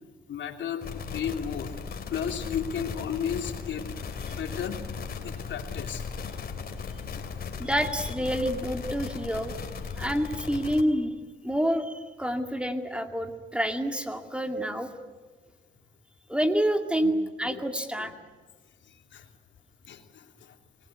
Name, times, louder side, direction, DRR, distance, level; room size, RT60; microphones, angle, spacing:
voice 1, 0.3-1.8 2.1-3.8 4.2-4.8 5.2-6.0 7.1-7.4 17.0-17.1 17.4-17.6 18.0-18.1 18.8-19.3 19.9-20.6, left 8 dB, 70° left, 5 dB, 2.9 m, -34 dB
sound 1, 0.8-10.8, left 5 dB, 50° left, 3.0 m, -37 dB
voice 2, 7.6-9.5 10.0-11.2 11.4-14.9 16.3-18.1, equal, 5° right, 6 dB, 2.2 m, -28 dB
26.0 x 19.5 x 9.5 m, 1.4 s
cardioid pair, 90°, 20 cm